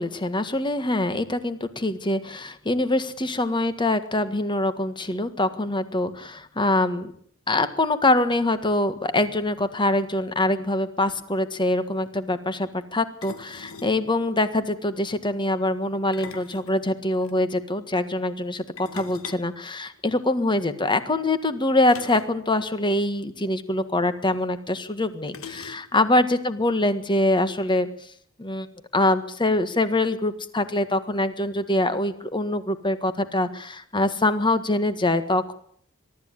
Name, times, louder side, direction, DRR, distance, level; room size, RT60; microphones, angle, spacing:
voice 1, 0.0-7.1 7.5-27.9 28.4-28.7 28.9-35.5, left 1 dB, 25° left, 11 dB, 1.6 m, -24 dB
sound 1, 10.9-11.0 11.2-11.4 13.2-14.0 15.9-17.3 18.8-20.4 21.9-22.4 22.7-22.8 23.1-23.2 24.3-24.4 25.3-26.1, left 5 dB, 85° left, 1.6 m, -42 dB
23.0 x 13.0 x 9.7 m, 0.62 s
head